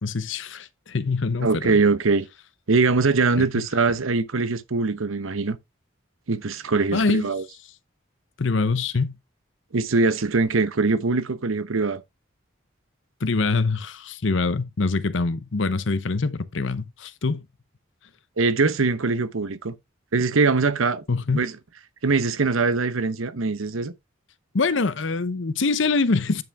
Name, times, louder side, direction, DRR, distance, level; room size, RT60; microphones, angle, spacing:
voice 1, 0.0-1.6 6.9-7.3 8.4-9.2 13.2-17.4 21.1-21.4 24.5-26.4, left 3 dB, 65° left, 0.8 m, -24 dB
voice 2, 1.4-2.3 2.7-5.6 6.3-7.4 9.7-12.0 18.4-19.8 20.1-21.0 21.3-21.5 22.0-23.9, right 4 dB, 85° right, 0.8 m, -22 dB
9.2 x 5.6 x 3.5 m
head